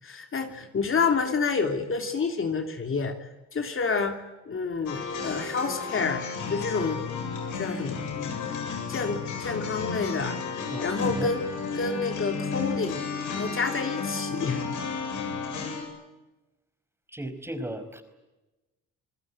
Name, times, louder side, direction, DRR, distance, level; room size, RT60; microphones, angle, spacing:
voice 1, 0.0-4.2 4.5-7.1 7.5-8.1 8.9-11.4 11.7-13.0 13.3-14.7, left 4 dB, 45° left, 5 dB, 3.1 m, -29 dB
sound 1, 4.9-15.8, left 5 dB, 80° left, 7.9 m, -33 dB
voice 2, 10.7-11.4 17.1-18.0, right 1 dB, 10° right, 9 dB, 4.9 m, -35 dB
28.5 x 19.5 x 8.9 m, 1.0 s
cardioid pair, 90°, 30 cm